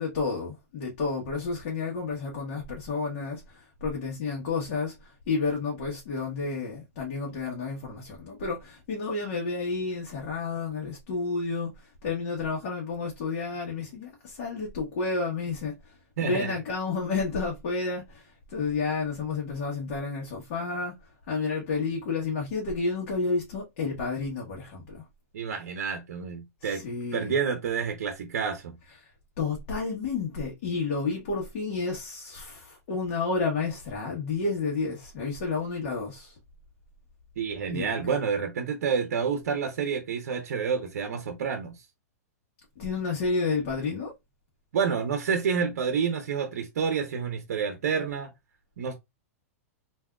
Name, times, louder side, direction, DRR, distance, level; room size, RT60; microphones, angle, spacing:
voice 1, 0.0-16.0 16.2-20.9 21.3-25.0 26.6-27.4 29.0-29.1 29.4-36.4 37.7-38.0 42.8-44.1, left 4 dB, 55° left, 1.1 m, -31 dB
voice 2, 16.2-16.6 25.3-26.8 27.1-28.8 37.4-41.8 44.7-48.3 48.8-48.9, right 6 dB, 75° right, 0.6 m, -29 dB
3.5 x 2.6 x 2.3 m
hypercardioid pair, 125°, 8 cm